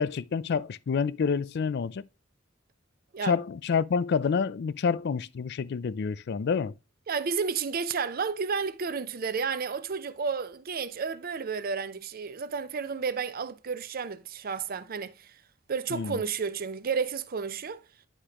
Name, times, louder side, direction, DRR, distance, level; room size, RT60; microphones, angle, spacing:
voice 1, 0.0-2.0 3.2-6.7 15.9-16.2, left 5 dB, 55° left, 0.4 m, -28 dB
voice 2, 7.1-15.4 15.7-17.8, right 5 dB, 50° right, 0.5 m, -31 dB
10.0 x 5.0 x 2.9 m
head